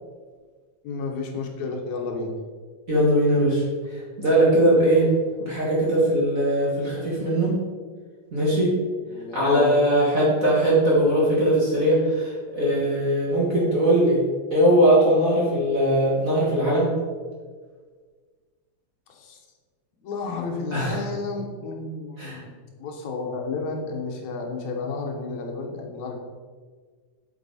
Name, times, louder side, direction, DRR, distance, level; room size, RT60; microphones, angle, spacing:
voice 1, 0.8-2.3 9.1-9.7 19.1-19.4 20.0-26.2, left 4 dB, 75° left, 2 dB, 2.2 m, -32 dB
voice 2, 2.9-3.6 3.9-5.1 5.4-7.6 8.3-8.7 9.3-14.2 14.5-16.9 20.7-21.0 22.2-22.4, right 1 dB, 35° right, -6 dB, 1.7 m, -20 dB
8.3 x 5.9 x 4.1 m, 1.5 s
omnidirectional pair, 3.3 m